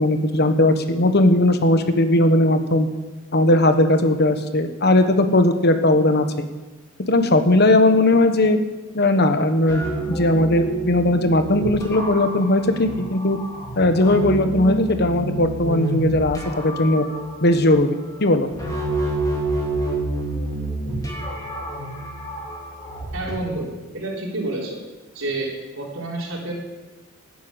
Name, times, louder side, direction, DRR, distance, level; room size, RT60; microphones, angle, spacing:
voice 1, 0.0-2.9 3.3-6.5 7.1-8.6 8.9-13.4 13.8-17.0 17.4-18.5, left 1 dB, 55° left, 8 dB, 1.2 m, -18 dB
sound 1, 9.7-23.3, right 1 dB, 20° left, 3.5 m, -29 dB
voice 2, 23.1-23.7 23.9-24.8 25.1-25.5 25.7-26.5, right 2 dB, 75° right, -2 dB, 3.8 m, -28 dB
13.0 x 9.3 x 8.9 m, 1.2 s
head